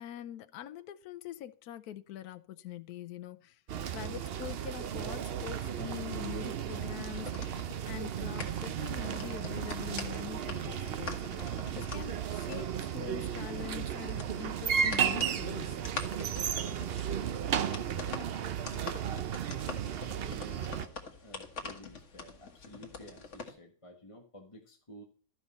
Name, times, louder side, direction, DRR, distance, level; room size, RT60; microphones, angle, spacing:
voice 1, 0.0-3.6 3.9-7.5 7.8-11.2 11.7-15.8, left 11 dB, 75° left, 1.1 m, -44 dB
sound 1, 3.7-20.9, right 8 dB, 55° right, 0.6 m, -34 dB
sound 2, 6.7-23.5, left 4 dB, 50° left, 1.7 m, -46 dB
voice 2, 20.1-25.0, equal, 20° left, 1.3 m, -52 dB
13.5 x 5.6 x 4.2 m
omnidirectional pair, 1.7 m